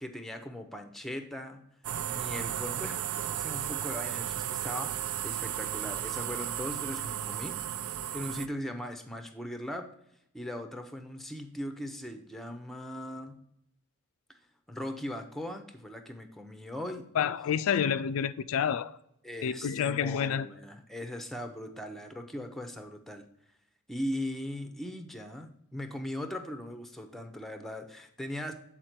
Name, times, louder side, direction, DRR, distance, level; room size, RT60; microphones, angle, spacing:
voice 1, 0.0-1.7 2.1-7.6 8.1-9.9 10.3-13.4 14.3-14.4 14.7-17.1 19.2-23.3 23.9-28.5, left 1 dB, ahead, 0.6 m, -39 dB
sound 1, 1.8-8.5, right 10 dB, 70° right, 0.4 m, -34 dB
voice 2, 17.2-19.0 19.4-20.5, left 8 dB, 65° left, 0.4 m, -29 dB
8.0 x 4.3 x 4.4 m
head